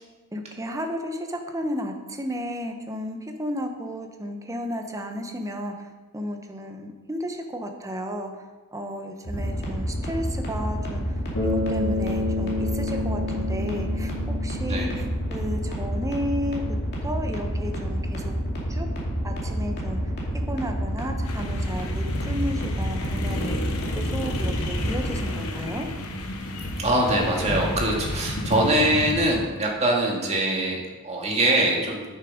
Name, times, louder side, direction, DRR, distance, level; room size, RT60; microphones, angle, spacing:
voice 1, 0.3-5.7 6.1-8.3 8.7-11.2 11.5-16.6 17.0-18.3 18.7-18.9 19.2-20.0 20.5-23.6 23.9-25.9, equal, 15° right, 4 dB, 0.9 m, -33 dB
sound 1, 9.2-25.2, equal, 50° left, 2.4 m, -28 dB
Bass guitar, 11.3-15.7, left 3 dB, 70° left, 3.3 m, -30 dB
voice 2, 14.6-15.0 26.8-32.1, right 1 dB, 30° right, -1 dB, 1.9 m, -23 dB
sound 2, 21.2-29.4, left 1 dB, 85° left, 1.0 m, -31 dB
9.3 x 6.6 x 5.1 m, 1.3 s
head